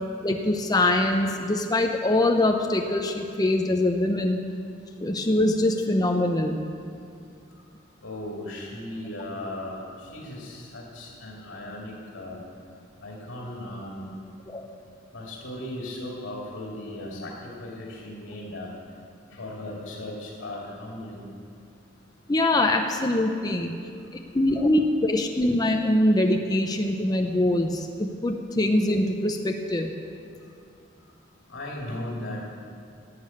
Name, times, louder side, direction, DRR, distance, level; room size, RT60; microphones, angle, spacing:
voice 1, 0.2-4.4 5.0-6.6 14.5-14.6 22.3-23.7 24.3-29.9, left 1 dB, 20° left, 3 dB, 0.6 m, -23 dB
voice 2, 8.0-12.4 13.0-14.1 15.1-18.7 19.3-21.2 24.5-24.6 31.5-32.6, left 1 dB, 85° left, -3 dB, 2.5 m, -37 dB
11.5 x 8.6 x 8.5 m, 2.4 s
head